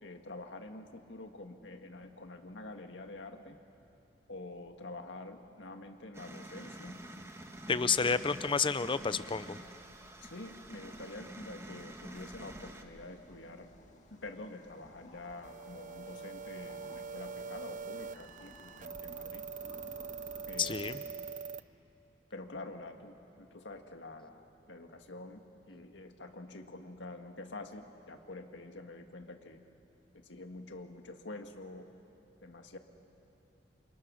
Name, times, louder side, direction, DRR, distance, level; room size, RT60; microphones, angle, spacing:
voice 1, 0.0-3.6 4.3-7.0 10.2-13.7 14.1-19.4 20.5-21.1 22.3-25.4 25.7-29.6 30.2-31.9 32.4-32.8, left 2 dB, 90° left, 5 dB, 1.9 m, -47 dB
sound 1, 6.1-12.8, right 1 dB, 15° right, 1.5 m, -48 dB
sound 2, 7.0-21.0, left 1 dB, 45° left, 2.0 m, -58 dB
voice 2, 7.7-9.6 20.6-21.0, left 5 dB, 30° left, 14 dB, 0.6 m, -30 dB
sound 3, 15.4-21.6, right 6 dB, 45° right, 0.5 m, -43 dB
28.5 x 27.5 x 6.4 m, 2.8 s
head